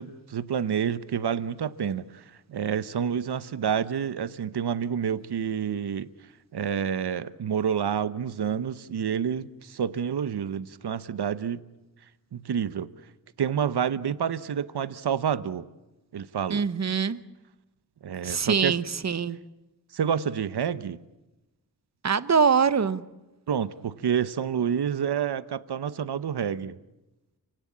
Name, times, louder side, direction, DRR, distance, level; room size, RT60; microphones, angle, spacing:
voice 1, 0.0-6.1 6.5-11.6 12.3-12.9 13.4-15.7 16.1-16.6 18.0-18.8 19.9-21.0 23.5-26.8, right 8 dB, 85° right, 0.9 m, -28 dB
voice 2, 16.5-17.2 18.2-19.4 22.0-23.0, right 6 dB, 45° right, 0.9 m, -23 dB
28.5 x 17.5 x 8.6 m
wide cardioid pair, 135°, 39 cm